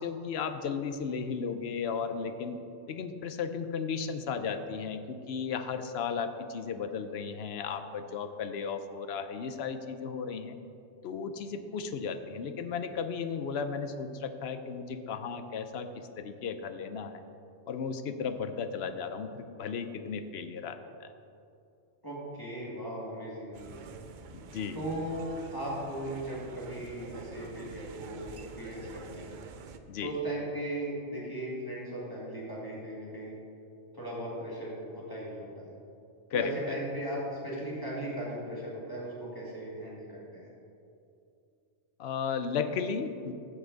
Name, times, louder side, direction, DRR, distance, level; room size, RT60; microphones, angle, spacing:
voice 1, 0.0-2.6 2.9-10.6 11.0-17.2 17.7-21.1 24.3-24.8 29.9-30.1 36.3-36.5 42.0-43.3, left 6 dB, 65° left, 9 dB, 0.8 m, -35 dB
voice 2, 22.0-24.0 24.7-29.3 30.0-33.4 33.9-35.7 36.3-40.5, right 1 dB, 20° left, -6 dB, 1.9 m, -37 dB
sound 1, 23.5-29.8, right 5 dB, 55° right, 0.6 m, -47 dB
14.5 x 5.6 x 3.9 m, 2.6 s
omnidirectional pair, 1.2 m